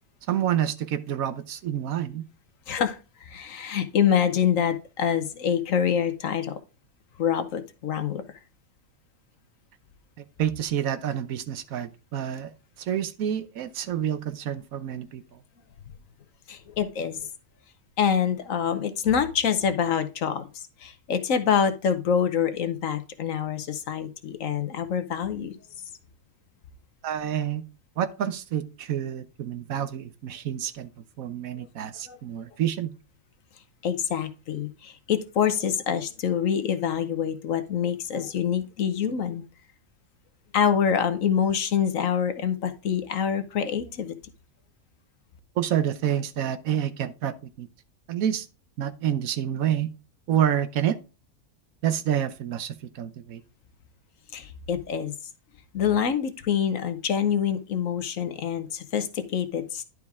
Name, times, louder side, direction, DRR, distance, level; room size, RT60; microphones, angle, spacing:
voice 1, 0.3-2.2 10.4-12.5 12.8-15.4 27.0-27.6 28.0-30.9 31.2-32.9 45.6-47.7 48.1-48.5 48.8-49.9 50.3-51.0 51.8-53.4, right 10 dB, 70° right, 1.1 m, -28 dB
voice 2, 2.7-6.6 7.2-8.2 16.5-17.2 18.0-25.6 31.6-31.7 32.1-32.2 33.8-39.4 40.5-44.1 54.3-55.1 55.7-59.8, left 8 dB, 65° left, 1.2 m, -26 dB
11.0 x 4.8 x 3.6 m
omnidirectional pair, 1.6 m